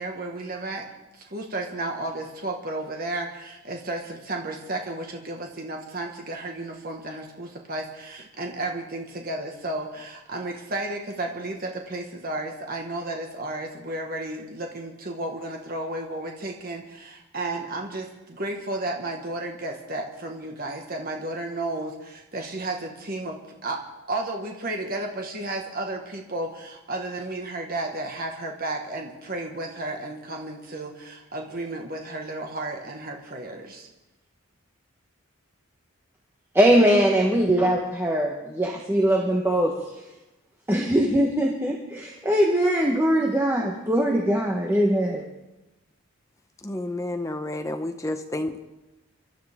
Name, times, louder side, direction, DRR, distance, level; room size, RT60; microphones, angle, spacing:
voice 1, 0.0-23.8 24.1-33.9, right 2 dB, 40° right, 2 dB, 1.6 m, -33 dB
voice 2, 36.5-38.3 38.6-39.8 40.7-45.2, right 1 dB, 10° right, 0 dB, 1.1 m, -21 dB
voice 3, 46.6-48.6, left 1 dB, 15° left, 6 dB, 0.9 m, -30 dB
24.5 x 12.5 x 3.6 m, 1.0 s
head